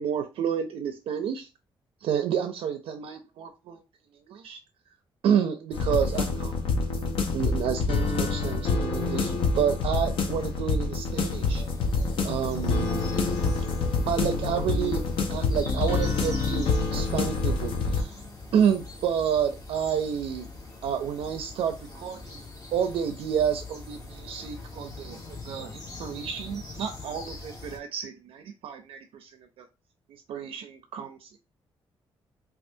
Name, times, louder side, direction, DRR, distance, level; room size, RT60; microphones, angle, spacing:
voice 1, 0.0-1.5 2.0-3.8 4.3-4.6 5.2-6.5 7.3-11.6 12.2-13.0 14.1-18.2 18.5-20.5 20.8-22.4 22.7-29.3 29.6-29.7 30.3-31.4, right 8 dB, 85° right, 5 dB, 0.4 m, -29 dB
sound 1, 5.7-18.0, left 4 dB, 70° left, 0.6 m, -27 dB
sound 2, 11.2-27.8, left 3 dB, 40° left, 1.4 m, -43 dB
4.3 x 2.3 x 2.6 m, 0.28 s
cardioid pair, 120°, 9 cm